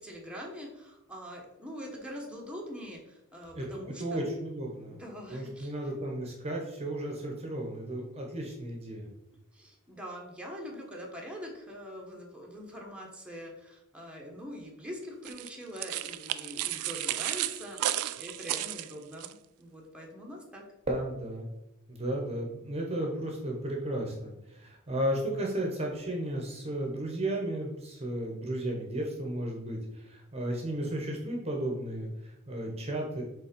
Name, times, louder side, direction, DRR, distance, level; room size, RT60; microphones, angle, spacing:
voice 1, 0.0-4.3 4.9-5.9 9.5-20.7, equal, 5° right, -1 dB, 1.2 m, -43 dB
voice 2, 3.5-5.0 5.3-9.1 20.9-21.5 21.9-33.2, right 1 dB, 30° right, 0 dB, 1.0 m, -34 dB
pasos sobre hojas, 15.2-19.3, right 14 dB, 80° right, 0.4 m, -33 dB
5.3 x 3.9 x 5.2 m, 0.89 s
head